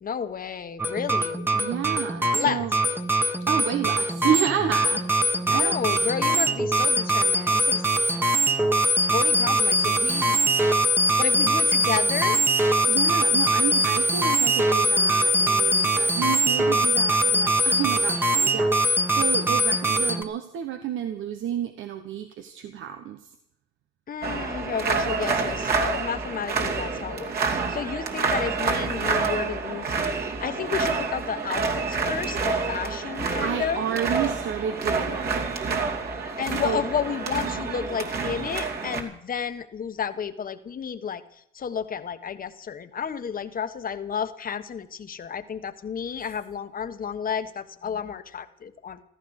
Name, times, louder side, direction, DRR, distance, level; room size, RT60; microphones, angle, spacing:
voice 1, 0.0-1.5 2.3-2.7 5.5-7.8 9.0-10.5 11.2-12.4 24.1-33.8 36.4-49.0, left 7 dB, 45° left, 10 dB, 1.3 m, -31 dB
sound 1, 0.8-20.2, right 1 dB, 10° right, 1.4 m, -22 dB
voice 2, 1.5-2.7 3.5-5.1 5.4-5.8 12.9-23.3 32.8-32.9 33.4-35.5 36.4-36.8, right 9 dB, 80° right, 8 dB, 1.2 m, -30 dB
sound 2, 24.2-39.0, right 4 dB, 50° right, 2.8 m, -28 dB
15.0 x 14.0 x 6.5 m, 0.74 s
cardioid pair, 90°, 20 cm